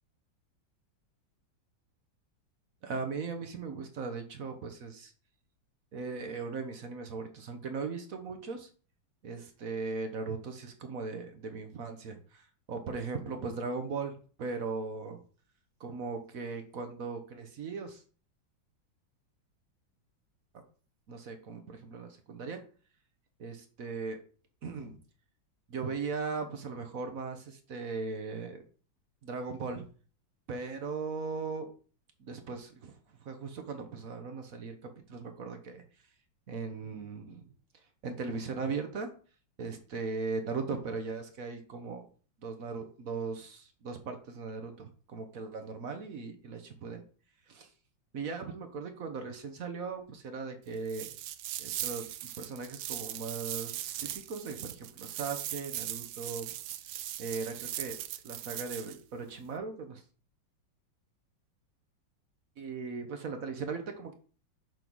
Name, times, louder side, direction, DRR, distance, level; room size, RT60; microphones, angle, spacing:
voice 1, 2.8-5.1 5.9-8.7 9.2-15.2 15.8-18.0 21.1-22.6 23.4-24.2 24.6-25.0 25.7-28.6 29.2-29.8 30.5-31.7 32.2-35.8 36.5-37.5 38.0-39.1 39.6-42.1 42.4-47.0 47.5-47.7 48.1-51.1 51.6-56.5 57.2-58.0 58.2-60.0 62.6-64.1, right 4 dB, 50° right, 7 dB, 1.2 m, -38 dB
sound 1, 50.9-59.0, right 13 dB, 80° right, 1.3 m, -39 dB
7.0 x 3.8 x 6.1 m, 0.41 s
omnidirectional pair, 2.2 m